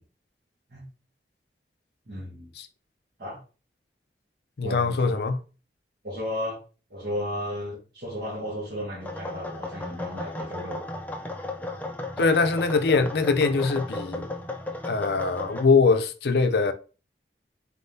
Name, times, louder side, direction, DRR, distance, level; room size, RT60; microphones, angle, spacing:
voice 1, 2.1-2.5 3.2-3.4 4.6-5.1 6.0-6.6 6.9-10.8, left 1 dB, 60° right, 1.7 m, -34 dB
voice 2, 4.6-5.4 12.2-14.3 14.8-16.7, left 4 dB, 65° left, 0.5 m, -22 dB
sound 1, 9.0-15.7, left 2 dB, 10° left, 0.4 m, -35 dB
4.2 x 3.6 x 2.6 m
head